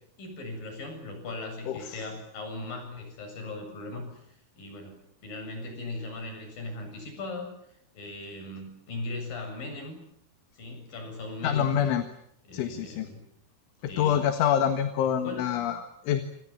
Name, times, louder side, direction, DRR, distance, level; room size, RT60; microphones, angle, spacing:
voice 1, 0.2-5.0 5.2-7.5 7.9-10.0 10.5-11.9 12.5-13.2 13.9-14.2 15.1-15.6, left 2 dB, 45° left, 5 dB, 9.1 m, -38 dB
voice 2, 1.7-2.0 11.4-12.0 12.5-13.1 13.8-16.2, left 9 dB, 70° left, 8 dB, 3.9 m, -26 dB
28.0 x 27.0 x 7.3 m, 0.70 s
omnidirectional pair, 5.9 m